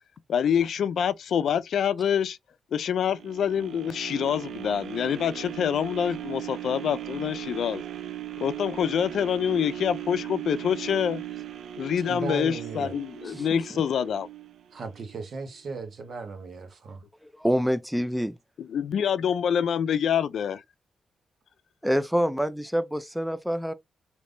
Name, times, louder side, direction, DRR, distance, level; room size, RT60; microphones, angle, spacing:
voice 1, 0.3-2.4 2.7-7.8 8.4-11.2 11.8-14.3 18.6-20.6, left 8 dB, 75° left, 0.4 m, -26 dB
sound 1, 3.1-15.2 15.7-15.8, right 11 dB, 80° right, 0.5 m, -38 dB
voice 2, 12.1-13.0 13.7-13.8 14.7-17.0, right 4 dB, 65° right, 1.2 m, -37 dB
voice 3, 17.4-18.4 21.8-23.7, equal, ahead, 0.4 m, -26 dB
3.4 x 2.9 x 2.6 m
cardioid pair, 65°, 0 cm